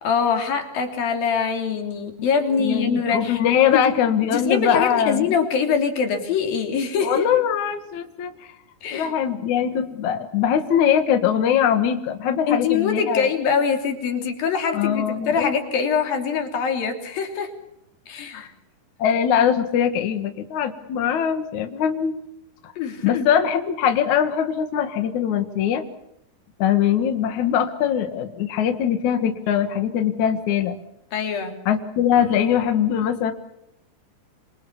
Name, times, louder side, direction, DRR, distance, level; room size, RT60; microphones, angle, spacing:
voice 1, 0.0-3.4 3.7-3.9 4.3-7.3 8.8-9.1 12.5-17.5 18.1-18.5 22.8-23.3 31.1-31.6, left 6 dB, 80° left, 5 dB, 4.9 m, -23 dB
voice 2, 2.6-5.3 7.0-8.5 8.9-13.3 14.7-15.5 18.3-18.5 19.0-22.1 22.6-22.7 23.0-25.8 26.6-30.8 31.7-33.3, left 9 dB, 60° left, 7 dB, 2.9 m, -22 dB
28.0 x 26.5 x 7.2 m, 0.79 s
omnidirectional pair, 4.0 m